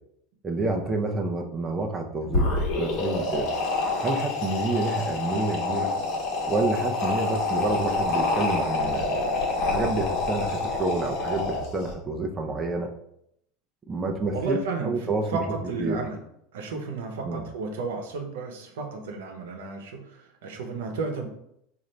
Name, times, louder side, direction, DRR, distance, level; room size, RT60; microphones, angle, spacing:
voice 1, 0.4-2.5 2.7-3.5 4.0-5.9 6.5-9.2 9.7-12.9 13.9-15.4 15.8-16.0 17.2-17.4, right 2 dB, 20° right, 1 dB, 0.5 m, -28 dB
sound 1, 2.2-11.9, left 3 dB, 55° left, 1.0 m, -27 dB
voice 2, 14.3-16.2 16.5-21.3, right 4 dB, 85° right, 3 dB, 0.8 m, -33 dB
4.1 x 2.5 x 3.1 m, 0.74 s
supercardioid pair, 130°, 0 cm